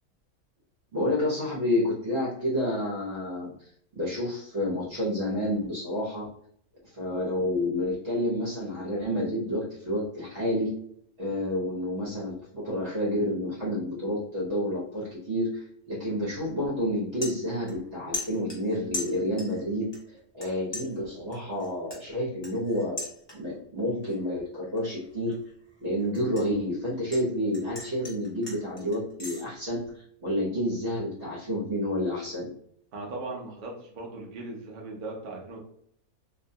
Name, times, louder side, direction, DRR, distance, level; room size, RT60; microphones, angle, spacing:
voice 1, 0.9-3.5 3.9-6.3 6.9-10.7 11.2-23.0 23.3-25.4 25.8-29.9 30.2-32.5, left 1 dB, 55° right, -5 dB, 1.1 m, -29 dB
sound 1, 16.3-16.5 16.9-17.9 18.1-19.6 19.9-20.5 20.7-23.6 24.0-24.4 24.8-27.2 27.5-29.4, left 2 dB, 30° left, 0.5 m, -39 dB
voice 2, 32.9-35.6, right 2 dB, 80° right, -1 dB, 0.4 m, -38 dB
2.7 x 2.1 x 2.6 m, 0.66 s
omnidirectional pair, 1.5 m